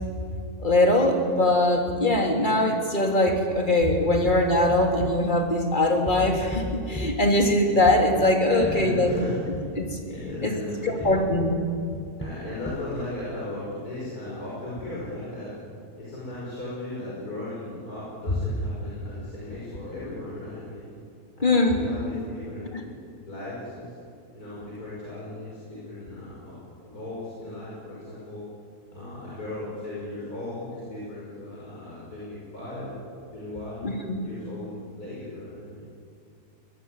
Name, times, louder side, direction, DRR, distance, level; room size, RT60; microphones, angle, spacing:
voice 1, 0.6-9.1 9.8-9.9 10.4-10.5 10.8-11.6 21.4-21.8 33.8-34.2, left 1 dB, 30° left, 3 dB, 3.2 m, -22 dB
sound 1, 3.8-5.7 6.1-10.5 11.0-12.9, left 1 dB, 10° left, 1.3 m, -37 dB
voice 2, 8.4-9.6 10.1-11.1 12.2-15.6 16.0-20.9 21.3-22.9 23.3-23.9 24.3-26.6 26.8-28.5 28.9-33.0 33.3-33.9 34.2-35.9, left 1 dB, 70° left, -7 dB, 6.5 m, -36 dB
23.0 x 19.5 x 9.8 m, 2.3 s
omnidirectional pair, 1.7 m